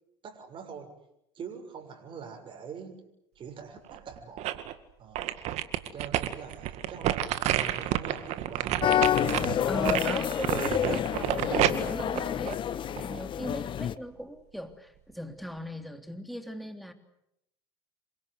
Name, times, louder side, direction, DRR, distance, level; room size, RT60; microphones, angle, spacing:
voice 1, 0.2-1.0 1.3-3.1 3.3-4.6 5.0-5.3 5.9-8.8, right 6 dB, 35° right, 4 dB, 6.8 m, -43 dB
sound 1, 3.9-4.7 5.2-13.2 13.6-13.7, right 13 dB, 55° right, 2.1 m, -30 dB
sound 2, 8.8-13.9, left 10 dB, 35° left, 1.1 m, -28 dB
voice 2, 9.6-16.9, equal, ahead, 6 dB, 3.5 m, -39 dB
28.0 x 24.5 x 8.2 m, 0.80 s
hypercardioid pair, 80°, 14 cm